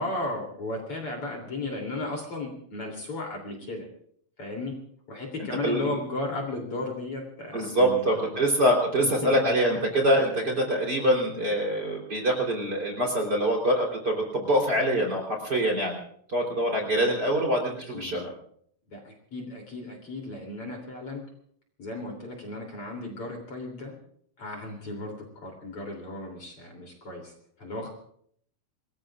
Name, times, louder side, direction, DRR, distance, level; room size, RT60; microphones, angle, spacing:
voice 1, 0.0-3.9 4.4-4.7 5.1-8.5 9.0-9.5 17.9-18.3 18.9-21.2 21.8-24.0 24.4-27.9, left 2 dB, 40° left, 1 dB, 3.9 m, -35 dB
voice 2, 5.6-5.9 7.5-16.0 16.3-18.3, equal, 25° right, 1 dB, 4.0 m, -25 dB
28.0 x 20.5 x 2.5 m, 0.63 s
omnidirectional pair, 4.4 m